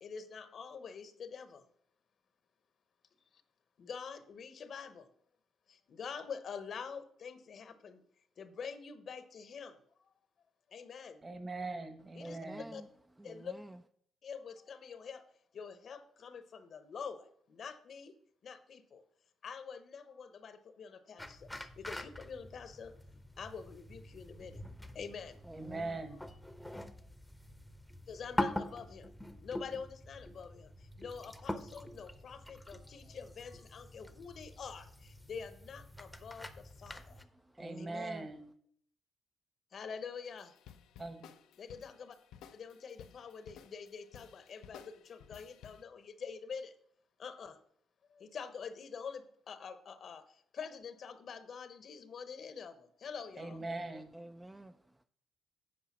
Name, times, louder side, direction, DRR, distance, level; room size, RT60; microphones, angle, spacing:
voice 1, 0.0-1.6 3.8-5.0 5.9-8.0 8.4-9.7 10.7-11.2 12.2-12.4 12.7-12.8 13.2-13.5 14.2-15.2 15.5-18.1 18.4-19.0 19.4-22.9 23.4-24.6 24.9-25.4 28.1-29.1 29.4-30.7 31.0-37.1 37.8-38.1 39.7-40.5 41.6-42.1 42.5-46.7 47.2-47.6 48.1-50.2 50.5-53.6, left 6 dB, 55° left, 0.9 m, -46 dB
voice 2, 11.2-12.7 25.5-26.2 37.6-38.4 41.0-41.3 53.4-54.1, right 2 dB, 30° right, 1.3 m, -41 dB
voice 3, 12.2-12.9 13.2-13.8 25.4-26.0 36.9-38.3 53.6-55.0, right 1 dB, 10° right, 0.4 m, -50 dB
sound 1, 21.2-37.2, left 1 dB, 5° left, 0.8 m, -44 dB
sound 2, 40.2-45.8, left 8 dB, 85° left, 0.5 m, -56 dB
8.5 x 4.9 x 6.0 m
cardioid pair, 90°, 0 cm